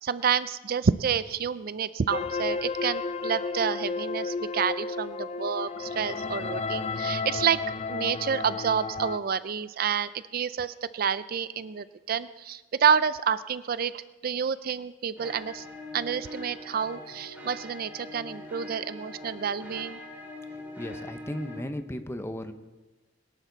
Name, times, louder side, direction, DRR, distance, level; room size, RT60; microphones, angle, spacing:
voice 1, 0.0-7.6 7.9-15.7 15.9-20.0, right 7 dB, 55° right, 15 dB, 0.4 m, -29 dB
sound 1, 2.1-9.2, left 4 dB, 35° left, 0.5 m, -32 dB
sound 2, 15.2-21.6, left 1 dB, 10° right, 3.7 m, -42 dB
voice 2, 20.8-22.5, left 1 dB, 15° left, 8 dB, 0.9 m, -35 dB
22.0 x 12.0 x 4.0 m, 1.2 s
head